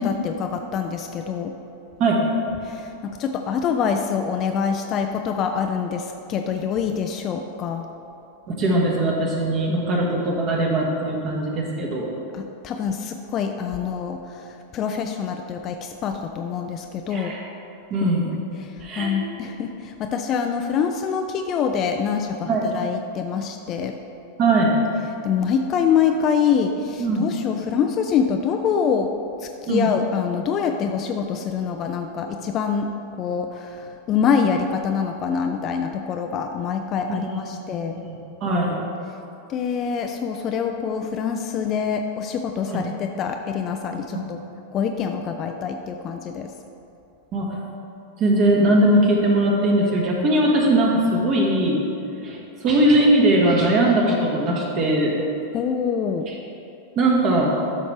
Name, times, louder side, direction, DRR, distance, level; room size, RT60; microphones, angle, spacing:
voice 1, 0.0-1.5 2.6-7.8 12.3-17.3 18.0-18.1 18.6-24.0 25.2-29.1 29.4-32.9 33.2-37.9 39.5-44.4 44.7-46.5 55.5-56.3, left 7 dB, 30° left, 5 dB, 0.4 m, -25 dB
voice 2, 8.6-12.1 17.1-17.4 17.9-18.3 18.8-19.1 22.5-22.7 24.4-24.7 27.0-27.2 29.7-29.9 37.1-37.6 37.9-38.7 42.7-42.9 44.1-44.2 47.3-47.5 48.2-51.8 52.2-55.1 56.3-56.4 56.9-57.6, right 1 dB, 35° right, -1 dB, 1.6 m, -20 dB
12.0 x 6.2 x 3.3 m, 2.8 s
figure-of-eight pair, 90°, 0 cm